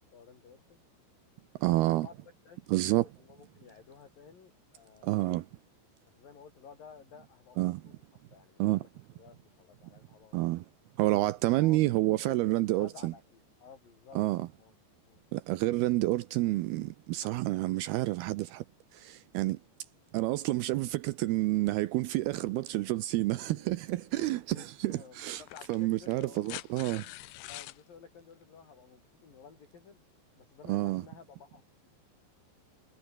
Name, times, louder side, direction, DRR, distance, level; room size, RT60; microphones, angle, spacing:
voice 1, 0.1-0.8 1.6-2.1 2.5-5.4 6.1-8.0 8.3-10.4 11.6-12.4 12.7-14.2 14.6-14.7 15.1-15.2 23.5-26.6 27.5-30.0 30.4-31.6, left 6 dB, 50° left, 5.9 m, -54 dB
voice 2, 1.6-2.1 2.7-3.1 5.0-5.5 7.6-7.8 8.6-8.8 10.3-10.7 11.0-13.1 14.2-14.5 15.3-18.7 18.9-19.6 20.1-25.4 25.7-27.1 30.7-31.0, right 17 dB, 85° right, 2.4 m, -29 dB
sound 1, 24.2-24.3 25.3-27.8 29.3-29.4, left 17 dB, 75° left, 2.9 m, -45 dB
omnidirectional pair, 5.1 m